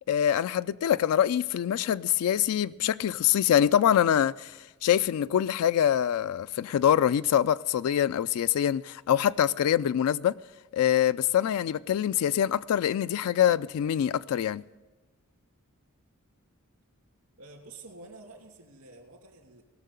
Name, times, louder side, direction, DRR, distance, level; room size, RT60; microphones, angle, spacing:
voice 1, 0.1-10.3 10.7-14.6, left 10 dB, 80° left, 0.3 m, -25 dB
voice 2, 17.4-19.6, right 3 dB, 75° right, 2.7 m, -49 dB
18.0 x 6.5 x 6.9 m
head